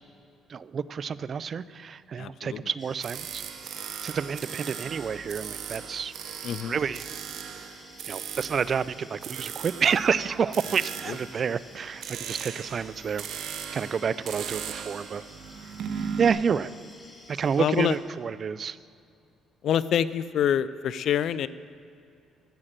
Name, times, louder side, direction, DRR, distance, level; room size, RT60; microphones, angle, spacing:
voice 1, 0.5-3.4 4.0-6.1 6.6-7.1 8.1-13.3 13.7-15.2 16.2-16.7 17.3-18.8, right 6 dB, 45° right, 17 dB, 0.4 m, -29 dB
voice 2, 2.1-2.7 6.4-6.8 11.1-11.2 17.6-18.0 19.6-21.5, left 9 dB, 65° left, 16 dB, 0.4 m, -26 dB
sound 1, 2.8-18.0, left 2 dB, 30° left, 2.1 m, -52 dB
sound 2, 3.0-16.3, right 7 dB, 70° right, 0.8 m, -38 dB
14.0 x 6.5 x 7.5 m, 2.5 s
cardioid pair, 95°, 0 cm